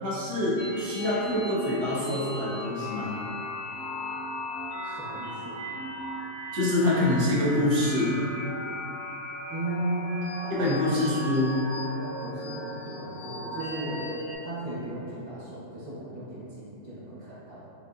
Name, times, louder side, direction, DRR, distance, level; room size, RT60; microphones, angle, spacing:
voice 1, 0.0-3.1 6.5-8.1 10.6-11.6, left 1 dB, 65° right, -7 dB, 1.4 m, -25 dB
sound 1, 0.6-14.3, left 1 dB, 65° left, 1.0 m, -37 dB
voice 2, 4.8-5.6 9.5-11.1 12.0-17.7, right 1 dB, 35° right, -11 dB, 0.8 m, -36 dB
5.2 x 2.6 x 2.5 m, 2.8 s
omnidirectional pair, 1.8 m